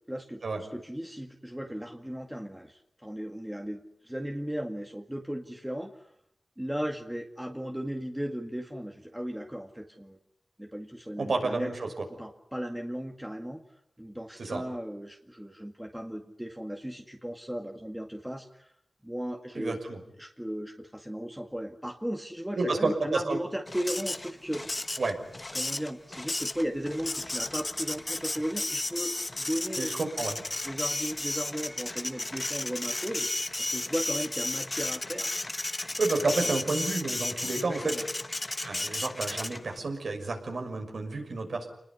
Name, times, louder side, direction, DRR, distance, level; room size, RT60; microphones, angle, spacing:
voice 1, 0.1-6.1 6.6-10.2 10.6-11.7 12.2-13.6 14.0-18.7 19.0-19.8 20.2-25.0 25.5-29.9 30.6-35.5 36.3-36.5 37.5-38.0, equal, 5° right, 3 dB, 2.0 m, -36 dB
voice 2, 11.2-12.0 14.4-14.6 19.5-20.0 22.6-23.4 25.0-25.1 29.8-30.3 36.0-38.0 38.6-41.7, right 3 dB, 75° right, 3 dB, 6.2 m, -30 dB
Printer, 23.7-39.8, left 2 dB, 30° left, 1.2 m, -34 dB
28.5 x 20.5 x 9.7 m, 0.74 s
wide cardioid pair, 70°, 0 cm